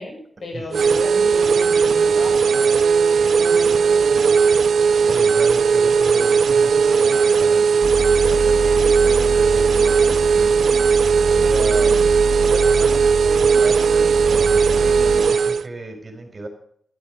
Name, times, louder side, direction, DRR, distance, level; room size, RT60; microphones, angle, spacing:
voice 1, 0.0-2.6 11.5-12.1, left 2 dB, 70° left, 0 dB, 7.6 m, -33 dB
sound 1, 0.7-15.6, right 5 dB, 90° right, 0.5 m, -17 dB
voice 2, 2.8-4.0 4.3-7.8 8.2-10.7 11.2-11.9 12.4-16.5, right 2 dB, 45° right, 4 dB, 4.9 m, -35 dB
sound 2, 7.8-15.2, right 2 dB, 20° right, 4.4 m, -27 dB
15.0 x 12.0 x 6.5 m, 0.65 s
wide cardioid pair, 105°, 0 cm